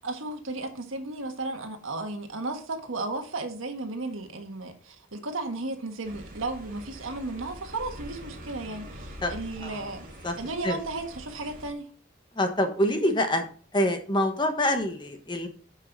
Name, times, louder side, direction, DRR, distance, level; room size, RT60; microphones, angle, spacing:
voice 1, 0.0-10.1 10.4-11.9, right 2 dB, 85° right, 1.5 m, -34 dB
sound 1, 6.0-11.7, equal, 45° right, 2.6 m, -44 dB
voice 2, 12.3-13.5 13.7-15.5, left 1 dB, 20° left, 1.1 m, -26 dB
9.7 x 5.5 x 4.0 m
head